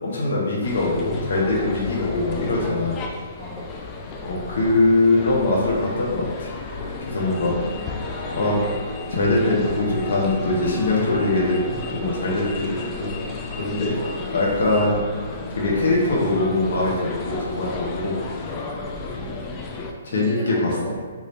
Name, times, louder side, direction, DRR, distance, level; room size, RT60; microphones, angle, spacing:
voice 1, 0.0-3.0 4.2-6.5 7.1-7.5 8.3-8.6 9.1-13.1 13.6-13.9 14.3-15.0 15.5-18.2 20.0-20.7, left 2 dB, 65° left, -5 dB, 1.1 m, -22 dB
sound 1, 0.6-19.9, left 3 dB, 20° left, 0.3 m, -33 dB
voice 2, 3.3-3.7 7.4-8.0 18.7-19.6 20.1-21.0, right 1 dB, 25° right, -7 dB, 1.1 m, -38 dB
sound 2, 6.7-18.7, left 2 dB, 40° left, 0.9 m, -39 dB
3.7 x 2.6 x 3.2 m, 1.5 s
hypercardioid pair, 160°, 0 cm